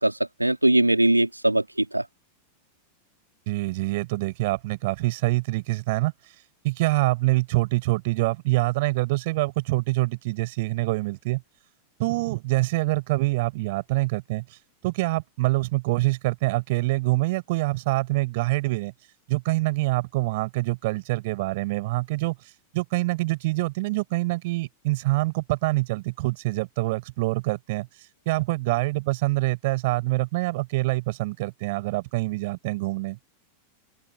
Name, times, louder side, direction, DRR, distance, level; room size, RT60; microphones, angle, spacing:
voice 1, 0.0-2.1, right 1 dB, 85° right, 3.8 m, -21 dB
voice 2, 3.5-6.1 6.6-11.4 12.0-14.4 14.8-18.9 19.3-22.4 22.7-27.9 28.3-33.2, right 21 dB, 50° right, 7.4 m, -25 dB
open air
figure-of-eight pair, 90°, 0 cm